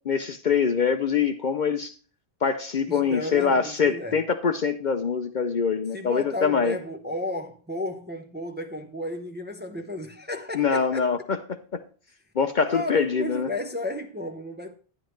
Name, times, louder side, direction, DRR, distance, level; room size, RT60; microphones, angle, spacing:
voice 1, 0.1-1.9 2.4-6.8 10.5-11.4 11.7-11.8 12.4-13.5, left 6 dB, 50° left, 0.7 m, -24 dB
voice 2, 2.9-4.2 5.9-11.1 12.7-14.7, left 1 dB, 10° right, 0.6 m, -33 dB
11.0 x 10.5 x 3.1 m
omnidirectional pair, 1.1 m